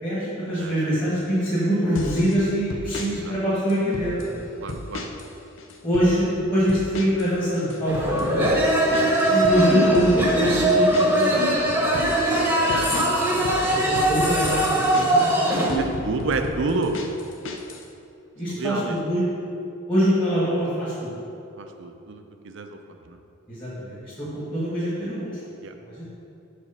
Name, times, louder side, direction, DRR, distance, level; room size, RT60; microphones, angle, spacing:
voice 1, 0.0-4.3 5.8-8.4 9.3-11.5 13.7-15.8 18.4-19.2 19.9-21.1 23.5-25.4 25.8-26.1, equal, 25° left, -11 dB, 1.5 m, -24 dB
voice 2, 0.6-1.2 3.2-3.3 4.6-5.1 11.8-12.0 12.7-13.1 16.0-16.9 18.5-19.0 21.6-22.8 23.1-23.2 25.6-25.7, right 3 dB, 65° right, 6 dB, 0.5 m, -30 dB
sound 1, 1.9-2.4 2.7-3.1 3.7-4.3 4.7-5.3 5.6-6.1 6.7-7.3 7.6-11.3 11.7-12.1 12.7-15.3 15.7-17.8, left 3 dB, 65° left, 0.6 m, -34 dB
sound 2, 7.9-15.7, right 1 dB, 10° right, 0.9 m, -21 dB
5.8 x 5.0 x 5.5 m, 2.7 s
head